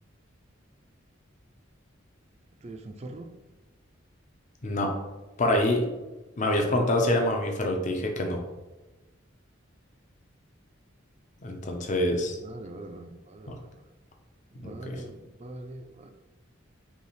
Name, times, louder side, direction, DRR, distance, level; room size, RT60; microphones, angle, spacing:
voice 1, 2.6-3.3 6.6-6.7 12.4-13.7 14.5-16.1, right 1 dB, 30° right, 6 dB, 0.4 m, -42 dB
voice 2, 5.4-5.9 6.4-8.4 11.4-12.4 13.5-13.6 14.6-15.0, left 1 dB, 40° left, 2 dB, 0.6 m, -26 dB
5.4 x 2.4 x 3.1 m, 1.1 s
head